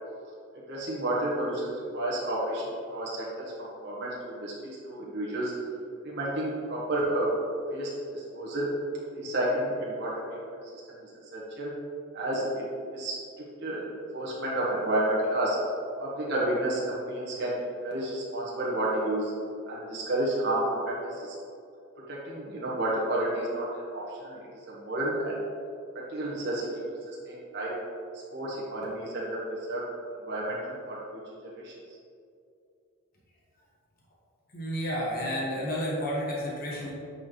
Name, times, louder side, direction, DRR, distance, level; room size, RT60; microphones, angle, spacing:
voice 1, 0.7-2.6 2.9-5.5 6.0-7.3 7.7-8.7 9.1-10.2 11.0-11.7 12.1-13.2 13.6-15.6 16.0-19.3 19.7-21.3 22.1-24.4 24.7-25.4 25.9-26.7 27.1-27.8 28.3-29.8 30.2-31.7, right 1 dB, 55° right, -6 dB, 1.5 m, -31 dB
voice 2, 34.5-36.9, equal, 45° left, -5 dB, 1.3 m, -31 dB
8.7 x 4.5 x 3.2 m, 2.5 s
head